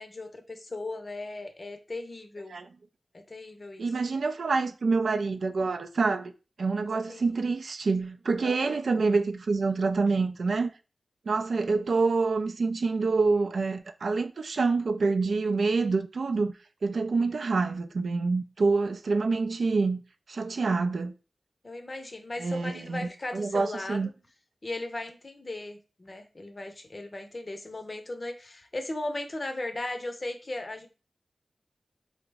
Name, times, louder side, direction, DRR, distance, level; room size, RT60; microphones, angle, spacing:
voice 1, 0.0-2.6 3.1-3.9 7.1-7.4 8.4-8.8 21.6-24.1 24.6-30.9, left 2 dB, 40° left, 0.6 m, -37 dB
voice 2, 3.8-6.3 6.6-10.7 11.3-16.5 16.8-20.0 20.3-21.1 22.4-24.1, right 4 dB, 80° right, 0.3 m, -27 dB
3.7 x 2.0 x 3.3 m
wide cardioid pair, 75°, 0 cm